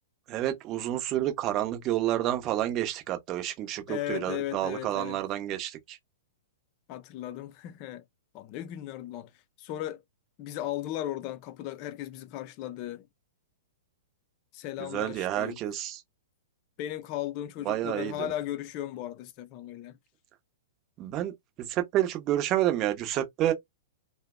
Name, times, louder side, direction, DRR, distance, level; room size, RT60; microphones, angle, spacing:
voice 1, 0.3-6.0 14.8-16.0 17.6-18.3 21.0-23.5, right 13 dB, 35° right, 0.7 m, -29 dB
voice 2, 3.9-5.2 6.9-8.0 8.3-9.3 9.6-10.0 10.4-13.1 14.5-15.6 16.8-20.0, left 13 dB, 40° left, 0.5 m, -36 dB
2.7 x 2.1 x 2.2 m
hypercardioid pair, 115°, 0 cm